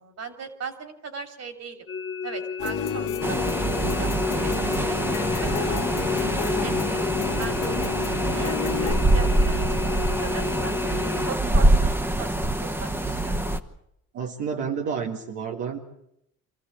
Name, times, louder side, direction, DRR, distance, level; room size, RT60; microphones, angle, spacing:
voice 1, 0.0-1.9 2.2-7.0 7.4-7.9 8.3-9.8 10.2-10.7 11.2-12.3 12.6-13.4, right 5 dB, 55° right, 7 dB, 3.2 m, -38 dB
sound 1, 1.9-11.3, left 5 dB, 45° left, 0.9 m, -32 dB
sound 2, 2.6-9.0, left 7 dB, 80° left, 1.7 m, -31 dB
sound 3, 3.2-13.6, right 1 dB, 10° right, 1.3 m, -25 dB
voice 2, 14.1-15.8, right 6 dB, 90° right, 1 dB, 1.8 m, -30 dB
25.5 x 15.0 x 8.7 m, 0.81 s
cardioid pair, 90°, 30 cm